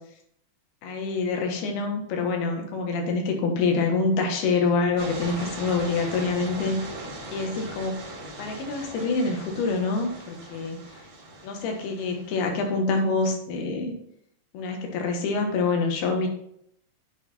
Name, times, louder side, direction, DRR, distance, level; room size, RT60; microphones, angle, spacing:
voice 1, 0.8-6.8 7.3-8.0 8.4-10.8 11.4-13.9 14.5-16.3, left 4 dB, 75° left, 3 dB, 3.1 m, -26 dB
sound 1, 5.0-12.6, right 1 dB, 50° right, 2.8 m, -39 dB
8.8 x 5.8 x 4.2 m, 0.71 s
omnidirectional pair, 4.7 m